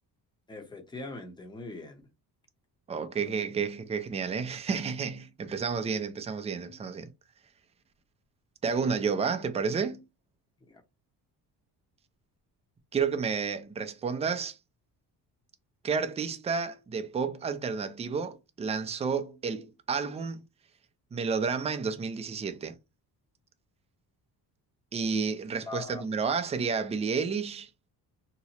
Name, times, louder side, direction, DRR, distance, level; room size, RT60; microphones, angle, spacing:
voice 1, 0.5-2.0 3.2-3.3 10.7-10.8 25.7-26.0, left 3 dB, 10° left, 0.7 m, -41 dB
voice 2, 2.9-7.1 8.6-10.0 12.9-14.6 15.8-20.4 21.1-22.8 24.9-27.7, right 5 dB, 15° right, 0.3 m, -31 dB
2.9 x 2.0 x 4.1 m
cardioid pair, 125°, 40 cm